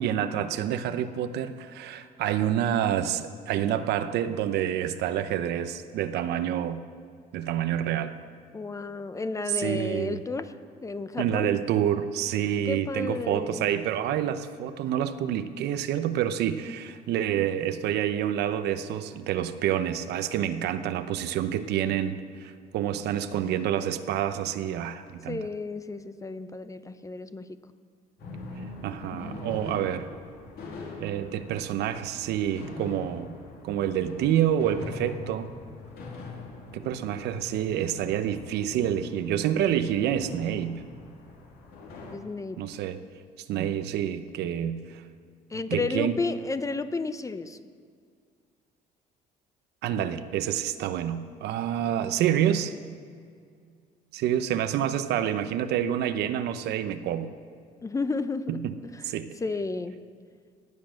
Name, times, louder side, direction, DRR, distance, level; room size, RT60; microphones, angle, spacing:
voice 1, 0.0-6.8 7.3-8.1 9.5-10.2 11.2-25.4 28.8-30.1 31.0-33.3 33.6-35.5 36.7-40.8 42.6-43.0 43.5-45.0 45.7-46.2 49.8-52.7 54.1-57.3 58.5-58.7 59.0-59.4, right 10 dB, 80° right, 10 dB, 0.8 m, -28 dB
voice 2, 8.5-10.5 10.8-11.5 12.6-13.7 25.3-27.5 42.1-42.6 45.5-47.6 57.8-58.9 59.4-60.0, left 3 dB, 20° left, 12 dB, 0.6 m, -32 dB
sound 1, 28.2-42.2, left 2 dB, 65° left, 2.8 m, -42 dB
18.0 x 8.5 x 6.5 m, 2.1 s
cardioid pair, 110°, 17 cm